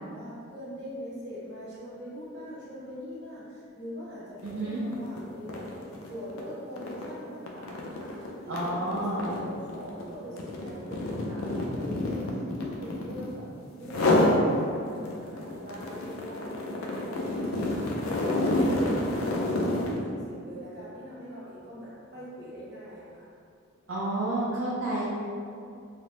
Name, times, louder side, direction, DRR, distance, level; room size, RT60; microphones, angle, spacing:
voice 1, 0.0-5.6 6.1-23.2, equal, 55° right, -9 dB, 1.1 m, -42 dB
sound 1, 4.4-4.6 4.9-13.4 13.8-14.4 14.9-20.0, left 1 dB, 80° left, 0.4 m, -28 dB
voice 2, 4.4-4.8 8.5-9.3 23.9-25.1, right 1 dB, 70° right, -8 dB, 0.5 m, -30 dB
3.3 x 2.0 x 2.8 m, 2.4 s
head